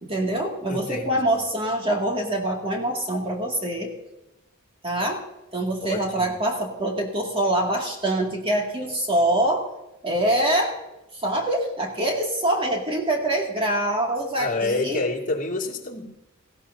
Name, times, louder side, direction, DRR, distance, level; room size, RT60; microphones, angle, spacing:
voice 1, 0.0-3.9 4.8-5.2 5.5-9.7 10.0-10.8 11.2-15.0, right 1 dB, 25° right, 0 dB, 2.3 m, -24 dB
voice 2, 0.7-1.2 5.8-6.3 14.4-16.0, left 2 dB, 40° left, -2 dB, 2.3 m, -28 dB
19.0 x 16.0 x 2.8 m, 0.95 s
head